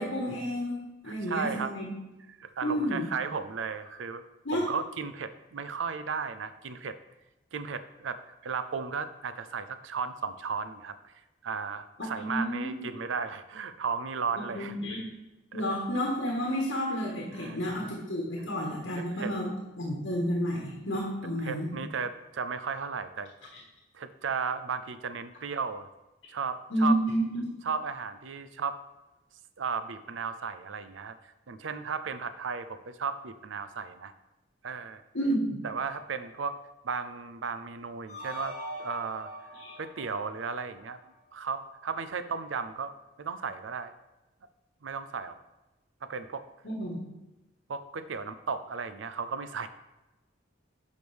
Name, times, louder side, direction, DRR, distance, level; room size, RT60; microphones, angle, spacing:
voice 1, 0.0-1.9 2.6-3.1 4.4-4.6 12.2-12.9 14.4-15.0 15.5-19.5 19.8-21.7 26.7-27.5 35.1-35.6 39.6-39.7 46.6-47.0, equal, 70° left, -2 dB, 1.5 m, -30 dB
voice 2, 1.0-1.7 2.4-4.2 4.5-7.0 7.5-11.0 11.4-14.8 15.5-15.8 17.3-17.6 19.1-19.3 21.5-23.5 23.9-25.9 26.3-27.0 27.6-28.8 29.6-31.2 31.5-34.1 34.6-35.0 35.6-36.6 36.8-39.3 39.8-41.0 41.3-42.9 43.2-43.9 44.8-45.4 46.0-46.4 47.7-49.7, right 5 dB, 85° right, 11 dB, 0.5 m, -35 dB
sound 1, 38.1-41.2, equal, 40° left, 1.9 m, -42 dB
10.5 x 5.2 x 3.5 m, 1.0 s
head